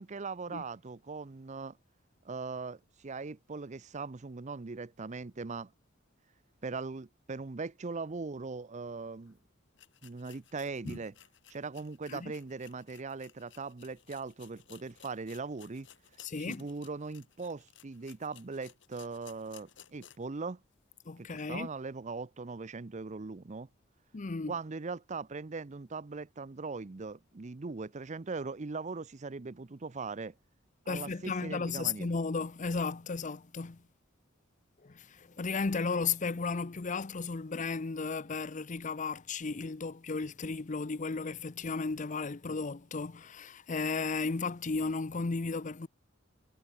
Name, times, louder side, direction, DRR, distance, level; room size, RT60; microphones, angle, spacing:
voice 1, 0.0-1.8 2.2-5.7 6.6-9.4 10.0-11.1 11.5-15.9 16.4-20.6 21.2-23.7 24.5-30.3 30.9-32.1, right 4 dB, 35° right, 0.6 m, -40 dB
sound 1, 9.2-9.3 9.7-20.4 20.7-20.8 21.3-21.4, left 10 dB, 65° left, 2.9 m, -58 dB
voice 2, 16.2-16.6 21.1-21.7 24.1-24.5 30.9-33.8 34.8-45.9, left 4 dB, 40° left, 0.7 m, -34 dB
head